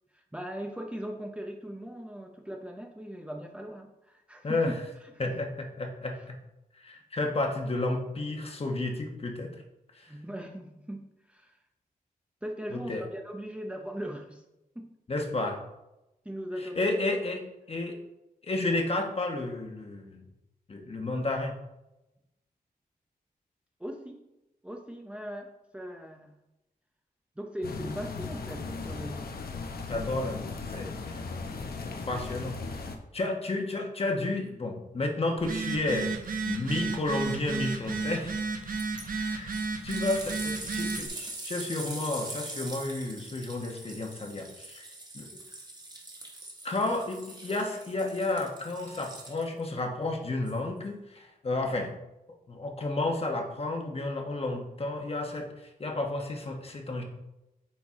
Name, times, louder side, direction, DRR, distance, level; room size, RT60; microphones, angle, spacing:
voice 1, 0.1-4.7 5.0-5.4 6.1-6.3 10.0-11.6 12.4-14.4 14.7-14.9 16.2-16.9 23.8-24.2 24.6-26.3 27.4-29.4, equal, 10° right, 2 dB, 0.6 m, -39 dB
voice 2, 4.4-4.7 5.2-6.3 6.8-9.5 9.9-10.1 12.7-13.0 15.1-15.6 16.6-18.0 18.4-20.2 20.7-21.5 29.9-31.2 31.6-32.9 33.1-36.2 36.5-38.4 39.1-44.9 45.1-45.3 46.6-51.9 52.5-57.0, left 2 dB, 40° left, 3 dB, 1.2 m, -32 dB
sound 1, 27.6-33.0, left 4 dB, 90° left, 0.8 m, -37 dB
Telephone, 35.4-41.1, right 4 dB, 65° right, 0.9 m, -33 dB
sound 2, 38.8-39.0 39.5-49.7 50.5-50.6, right 2 dB, 25° right, 1.2 m, -43 dB
8.7 x 4.6 x 3.6 m, 0.93 s
wide cardioid pair, 120°, 15 cm